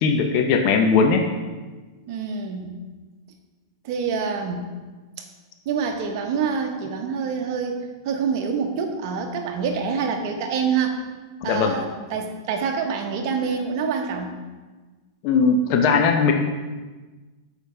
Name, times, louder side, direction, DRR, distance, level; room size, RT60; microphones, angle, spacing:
voice 1, 0.0-1.2 11.4-11.8 15.2-16.3, left 5 dB, 45° left, 4 dB, 0.6 m, -19 dB
voice 2, 2.1-2.8 3.8-4.6 5.6-11.0 11.4-14.4, right 6 dB, 55° right, 3 dB, 1.0 m, -26 dB
6.4 x 4.8 x 3.3 m, 1.3 s
hypercardioid pair, 125°, 2 cm